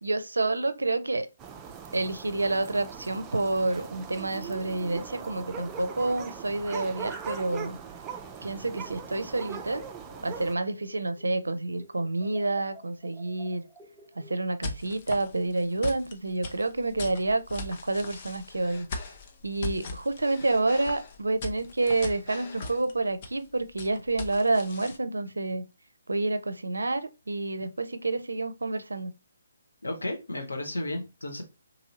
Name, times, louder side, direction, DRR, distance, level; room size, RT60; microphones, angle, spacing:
voice 1, 0.0-1.3 1.9-7.8 8.4-9.8 10.2-13.7 14.2-18.9 19.4-25.6 26.1-29.1, right 2 dB, 80° right, 0.4 m, -29 dB
sound 1, 1.4-10.5, right 7 dB, 15° right, 0.3 m, -40 dB
sound 2, 8.2-11.4 11.7-14.8, equal, 10° left, 0.8 m, -52 dB
sound 3, 14.6-25.0, left 3 dB, 40° left, 0.6 m, -40 dB
voice 2, 29.8-31.4, left 1 dB, 80° left, 1.0 m, -33 dB
2.8 x 2.7 x 2.8 m
figure-of-eight pair, 140°, 0 cm